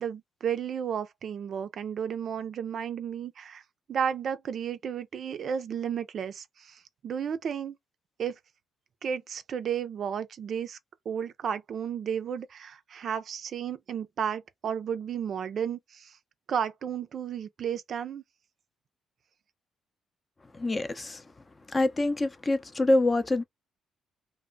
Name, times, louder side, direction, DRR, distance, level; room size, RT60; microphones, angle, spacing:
voice 1, 0.0-3.6 3.9-7.8 8.2-8.4 9.0-10.8 11.1-16.2 16.5-18.2, right 8 dB, 60° right, 0.4 m, -33 dB
voice 2, 20.5-21.3 21.7-23.4, left 2 dB, 25° left, 0.5 m, -26 dB
2.1 x 2.1 x 3.7 m
cardioid pair, 90°, 0 cm